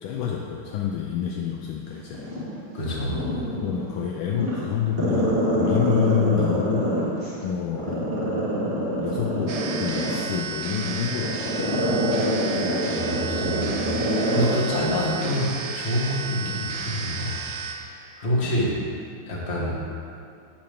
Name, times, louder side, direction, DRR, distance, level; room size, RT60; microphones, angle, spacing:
voice 1, 0.0-2.3 3.1-7.1 7.4-8.1 9.0-12.0 14.4-14.5 16.4-16.6 18.4-18.5, left 8 dB, 75° left, 0 dB, 1.3 m, -28 dB
Growling, 2.1-3.9 4.3-7.3 7.7-14.6 14.9-15.0, right 1 dB, 30° right, 1.7 m, -25 dB
voice 2, 2.7-3.2 12.5-13.7 14.3-15.5 15.7-17.6 17.9-18.7 19.3-19.7, equal, 30° left, -5 dB, 1.6 m, -27 dB
sound 1, 9.5-17.8, right 5 dB, 65° right, 0.9 m, -33 dB
10.0 x 6.8 x 3.5 m, 2.5 s
omnidirectional pair, 2.4 m